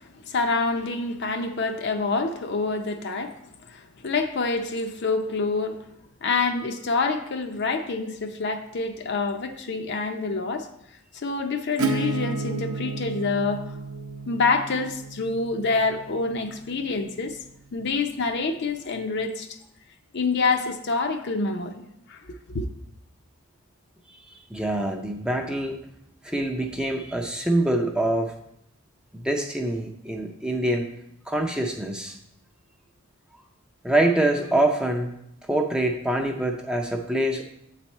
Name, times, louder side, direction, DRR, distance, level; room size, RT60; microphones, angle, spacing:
voice 1, 0.3-3.3 3.7-5.8 6.2-10.7 11.1-13.6 14.3-17.4 17.7-19.5 20.1-21.8 22.1-22.2 22.5-22.7, left 3 dB, 50° left, 7 dB, 0.5 m, -26 dB
Acoustic guitar / Strum, 11.8-17.3, right 2 dB, 70° right, 0.6 m, -32 dB
voice 2, 24.5-25.8 26.2-28.3 29.1-30.9 31.3-32.2 33.8-35.1 35.5-37.5, right 1 dB, 5° right, 3 dB, 0.4 m, -25 dB
7.9 x 4.2 x 4.4 m, 0.77 s
head